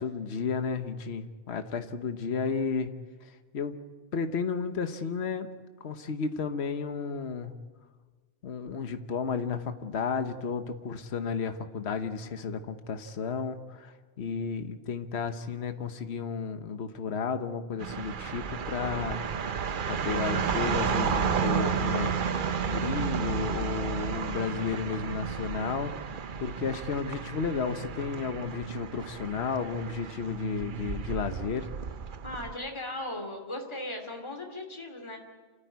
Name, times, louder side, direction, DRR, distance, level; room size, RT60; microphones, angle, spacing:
voice 1, 0.0-2.9 3.2-3.8 4.1-5.5 5.8-7.5 8.4-19.2 19.8-22.1 22.7-26.0 26.4-31.7, left 5 dB, 70° left, 8 dB, 1.4 m, -33 dB
sound 1, 17.8-32.5, right 6 dB, 50° right, 0.9 m, -32 dB
voice 2, 32.2-35.2, left 1 dB, 25° left, 3 dB, 2.8 m, -37 dB
28.5 x 14.0 x 9.4 m, 1.4 s
omnidirectional pair, 1.1 m